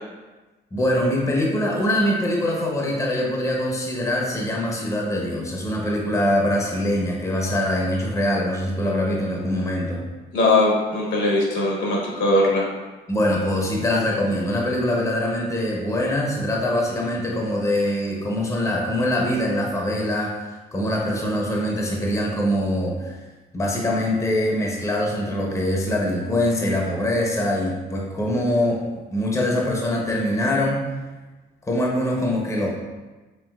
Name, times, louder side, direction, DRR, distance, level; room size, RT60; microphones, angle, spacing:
voice 1, 0.7-10.0 13.1-20.3 20.7-23.2 23.5-28.8 29.1-30.8 31.7-32.7, left 1 dB, 15° left, -2 dB, 0.7 m, -23 dB
voice 2, 10.3-12.6, left 2 dB, 75° left, -3 dB, 1.2 m, -20 dB
5.3 x 2.7 x 2.3 m, 1.2 s
cardioid pair, 90°, 20 cm